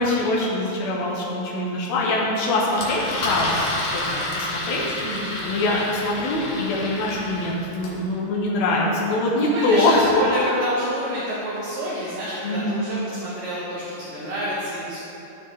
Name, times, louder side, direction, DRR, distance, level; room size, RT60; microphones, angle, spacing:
voice 1, 0.0-4.8 5.4-10.2 12.4-12.8, left 2 dB, 80° left, -4 dB, 1.6 m, -23 dB
Engine, 2.7-8.0, left 1 dB, 60° left, 2.7 m, -29 dB
voice 2, 5.0-5.4 9.3-15.0, equal, 65° right, -9 dB, 2.7 m, -28 dB
13.0 x 5.3 x 4.0 m, 2.8 s
omnidirectional pair, 4.7 m